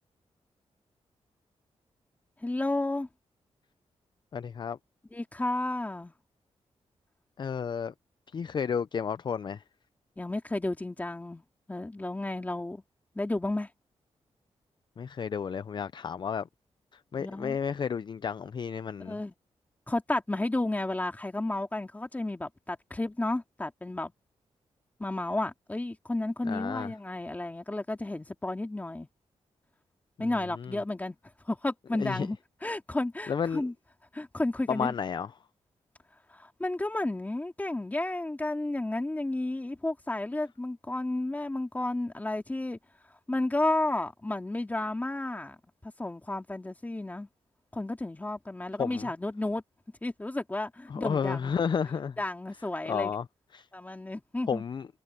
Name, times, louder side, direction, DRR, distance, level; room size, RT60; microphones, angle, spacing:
voice 1, 2.4-3.1 5.1-6.1 10.2-11.4 11.7-12.8 13.1-13.7 17.2-17.6 19.0-19.3 19.9-24.1 25.0-29.1 30.2-31.2 31.5-33.7 34.1-34.9 36.3-42.8 43.3-45.6 45.8-47.3 47.7-49.6 50.0-51.5 52.2-53.1 53.7-54.6, left 2 dB, 15° left, 2.4 m, -32 dB
voice 2, 4.3-4.8 7.4-7.9 8.3-9.6 15.0-16.5 17.1-19.2 26.5-26.9 30.6-30.7 32.0-32.3 33.3-33.6 34.7-35.3 48.8-49.1 50.9-52.2 52.9-53.2 53.5-53.7 54.5-54.9, left 6 dB, 40° left, 0.4 m, -31 dB
wide cardioid pair, 130°, 11 cm